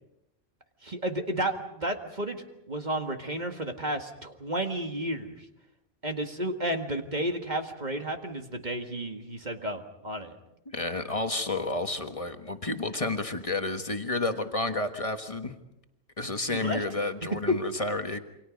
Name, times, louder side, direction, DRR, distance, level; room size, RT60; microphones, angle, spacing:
voice 1, 0.8-5.3 6.0-10.3 16.5-16.8, right 1 dB, 30° right, 5 dB, 1.9 m, -32 dB
voice 2, 10.7-15.6 16.2-18.2, left 2 dB, 25° left, 7 dB, 1.4 m, -31 dB
28.5 x 25.0 x 5.2 m, 0.86 s
omnidirectional pair, 1.5 m